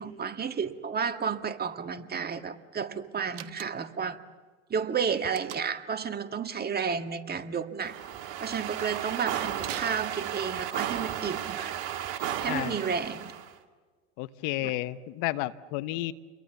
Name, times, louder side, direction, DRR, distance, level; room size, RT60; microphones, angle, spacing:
voice 1, 0.0-4.2 4.7-11.8 12.1-13.3 14.6-14.7, right 6 dB, 25° right, 9 dB, 1.8 m, -32 dB
Slam, 3.3-4.1 5.3-5.9 9.6-10.7, right 13 dB, 75° right, 1.2 m, -42 dB
sound 1, 7.8-13.5, right 10 dB, 55° right, 2.5 m, -34 dB
voice 2, 14.2-16.1, left 17 dB, 55° left, 14 dB, 1.1 m, -31 dB
29.5 x 23.0 x 7.1 m, 1.5 s
hypercardioid pair, 85°, 37 cm